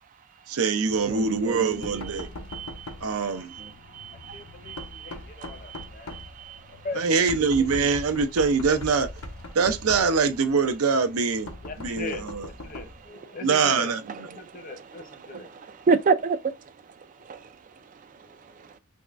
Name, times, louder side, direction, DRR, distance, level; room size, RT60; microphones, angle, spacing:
voice 1, 0.5-2.3 3.0-3.5 7.0-9.1 9.5-11.5 11.8-12.1 13.4-14.0, right 5 dB, 80° right, 0.6 m, -23 dB
Knock, 0.9-13.1, left 1 dB, 75° left, 0.7 m, -42 dB
voice 2, 1.1-2.9 3.5-5.1 5.4-6.7 15.9-16.7 17.2-17.5 18.6-18.7, right 5 dB, 35° right, 0.3 m, -29 dB
voice 3, 3.1-3.5 4.3-6.2 6.7-7.2 11.6-15.6 17.2-17.3 17.7-18.8, left 3 dB, 40° left, 0.8 m, -41 dB
3.5 x 3.1 x 2.4 m
head